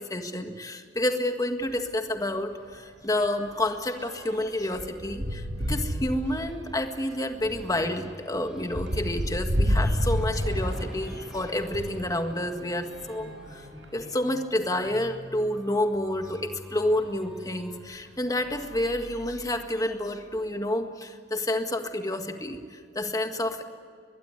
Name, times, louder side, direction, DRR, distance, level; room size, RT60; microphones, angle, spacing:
voice 1, 0.0-13.6 13.9-23.6, left 1 dB, 20° left, 6 dB, 1.8 m, -29 dB
sound 1, 1.6-1.8 2.2-2.3 2.6-12.1 12.8-14.1 14.8-14.9 15.2-15.3 17.0-17.1 17.7-18.0 18.4-19.6, equal, 90° right, 5.3 m, -32 dB
sound 2, 7.4-17.8, equal, 5° right, 2.0 m, -47 dB
23.0 x 21.5 x 9.9 m, 2.2 s
head